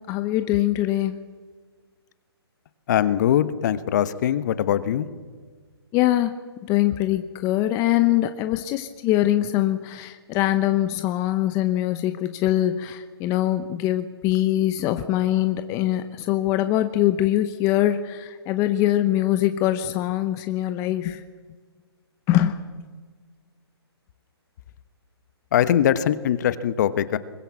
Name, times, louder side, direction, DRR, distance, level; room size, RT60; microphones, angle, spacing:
voice 1, 0.1-1.2 5.9-6.3 6.6-21.2 22.3-22.6, left 13 dB, 20° left, 9 dB, 0.9 m, -23 dB
voice 2, 2.9-5.1 25.5-27.2, left 10 dB, 40° left, 14 dB, 1.1 m, -21 dB
23.5 x 21.0 x 7.2 m, 1.5 s
hypercardioid pair, 140°, 14 cm